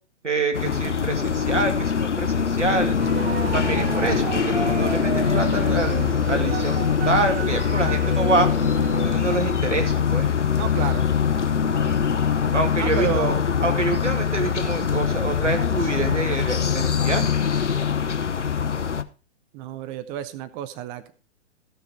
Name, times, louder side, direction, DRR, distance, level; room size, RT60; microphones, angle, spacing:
voice 1, 0.2-3.0 3.5-8.5 9.0-10.3 11.7-12.0 12.5-13.3 13.6-17.4, right 2 dB, 85° right, 5 dB, 2.6 m, -26 dB
sound 1, 0.5-19.0, left 7 dB, 80° left, 0.9 m, -23 dB
sound 2, 3.0-9.5, right 5 dB, 55° right, 2.6 m, -31 dB
voice 2, 10.6-11.1 12.8-13.5 19.5-21.1, right 11 dB, 15° right, 13 dB, 0.4 m, -30 dB
14.5 x 6.9 x 4.6 m, 0.35 s
figure-of-eight pair, 115°, 35 cm